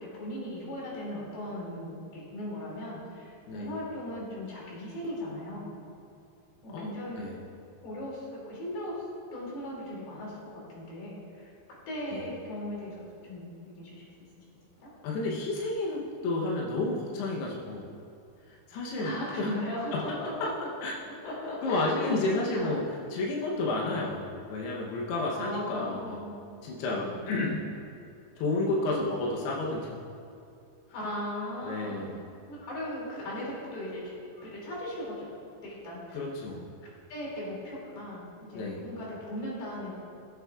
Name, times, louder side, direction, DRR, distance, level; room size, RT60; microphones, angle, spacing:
voice 1, 0.0-5.7 6.6-7.3 7.8-9.0 9.3-11.5 11.9-13.5 13.8-14.1 14.8-14.9 19.0-20.5 21.2-22.2 22.5-22.7 23.8-24.1 25.3-26.5 26.9-27.3 30.9-32.2 32.5-34.0 34.4-35.3 35.5-36.2 37.1-39.9, left 1 dB, 55° left, -5 dB, 4.2 m, -37 dB
voice 2, 6.7-7.4 12.1-12.2 15.0-17.9 18.7-19.5 20.8-20.9 21.6-22.8 23.1-26.2 26.6-27.7 28.4-29.9 31.6-32.2 36.1-36.7 38.5-38.8, left 2 dB, 75° left, -3 dB, 2.4 m, -31 dB
18.5 x 8.1 x 2.3 m, 2.5 s
omnidirectional pair, 5.7 m